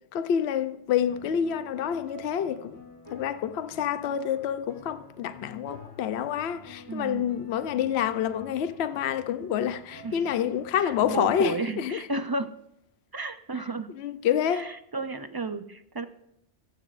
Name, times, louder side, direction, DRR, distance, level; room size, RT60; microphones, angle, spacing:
voice 1, 0.1-2.8 3.1-12.0 14.0-14.8, left 9 dB, 70° left, 0.9 m, -28 dB
sound 1, 1.1-11.5, left 3 dB, 35° left, 4.0 m, -49 dB
voice 2, 6.9-7.3 10.0-10.2 10.8-12.5 13.1-13.9 14.5-16.0, right 3 dB, 35° right, 0.4 m, -33 dB
26.5 x 9.2 x 2.5 m
omnidirectional pair, 1.2 m